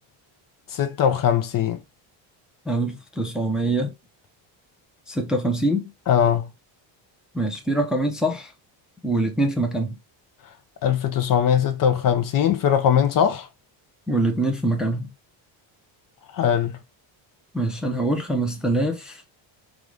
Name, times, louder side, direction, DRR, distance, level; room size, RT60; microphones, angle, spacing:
voice 1, 0.7-1.8 6.1-6.5 10.8-13.5 16.3-16.7, left 9 dB, 45° left, 0.6 m, -20 dB
voice 2, 2.7-3.9 5.1-5.9 7.3-8.5 9.0-10.0 14.1-15.1 17.5-19.2, right 1 dB, ahead, 0.6 m, -24 dB
4.7 x 2.4 x 3.7 m
cardioid pair, 160°, 48 cm